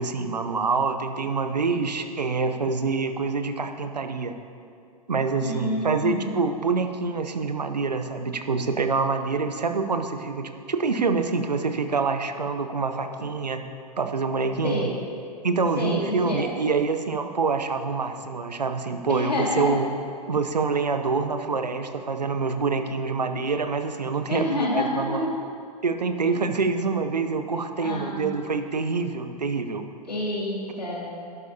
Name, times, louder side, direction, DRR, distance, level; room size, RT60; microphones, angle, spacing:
voice 1, 0.0-4.3 5.1-13.6 14.0-14.9 15.4-19.9 20.3-25.3 25.8-29.8, right 4 dB, 85° right, 8 dB, 0.7 m, -26 dB
voice 2, 5.4-6.3 14.6-15.0 15.8-16.5 19.1-19.8 24.3-25.3 26.2-26.4 27.8-28.3 30.1-31.2, left 1 dB, 85° left, -2 dB, 2.1 m, -28 dB
11.5 x 11.0 x 2.8 m, 2.5 s
figure-of-eight pair, 100°, 21 cm